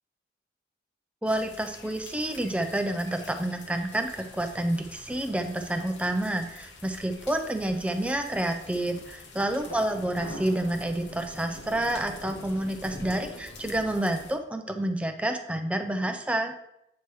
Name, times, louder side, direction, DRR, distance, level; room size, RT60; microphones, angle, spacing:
voice 1, 1.2-16.6, right 1 dB, 5° right, 5 dB, 0.5 m, -29 dB
sound 1, 1.3-14.3, left 1 dB, 80° left, 0.9 m, -45 dB
8.2 x 3.1 x 4.6 m, 0.81 s
head